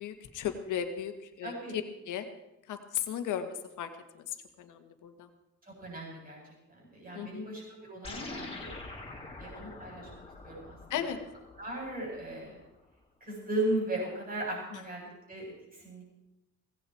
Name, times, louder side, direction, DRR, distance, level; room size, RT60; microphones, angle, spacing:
voice 1, 0.0-2.3 2.7-3.9 4.1-5.3 7.1-7.3 10.9-11.2, left 9 dB, 80° left, 7 dB, 1.9 m, -36 dB
voice 2, 1.4-1.7 5.6-8.7 9.4-10.1 10.4-10.8 11.6-12.6 13.2-16.0, right 1 dB, 30° right, -3 dB, 7.8 m, -37 dB
sound 1, 8.0-12.7, left 2 dB, 20° left, 4.2 m, -45 dB
18.0 x 16.0 x 4.6 m, 0.90 s
cardioid pair, 90°, 30 cm